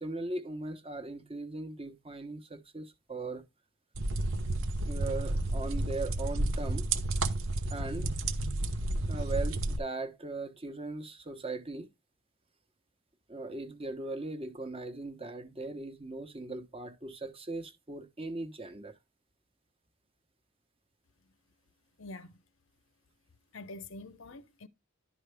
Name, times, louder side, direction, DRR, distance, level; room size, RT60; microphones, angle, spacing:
voice 1, 0.0-3.4 4.9-6.9 7.7-8.1 9.1-11.9 13.3-19.0, right 2 dB, 25° right, 1.0 m, -39 dB
sound 1, 4.0-9.8, right 2 dB, 70° right, 0.9 m, -31 dB
voice 2, 22.0-22.3 23.5-24.7, left 2 dB, 60° left, 0.8 m, -45 dB
11.5 x 5.0 x 3.4 m
head